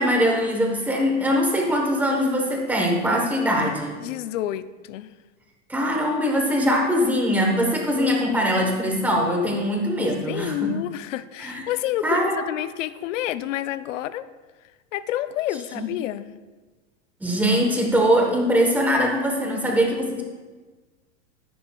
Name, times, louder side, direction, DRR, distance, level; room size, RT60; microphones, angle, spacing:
voice 1, 0.0-4.0 5.7-10.7 11.4-11.6 12.0-12.4 15.7-15.9 17.2-20.2, equal, 5° right, 0 dB, 1.1 m, -22 dB
voice 2, 4.0-5.1 8.0-9.2 10.0-14.2 14.9-16.3 19.6-19.7, left 13 dB, 65° left, 14 dB, 0.6 m, -30 dB
13.0 x 11.0 x 2.3 m, 1.3 s
supercardioid pair, 155°, 40 cm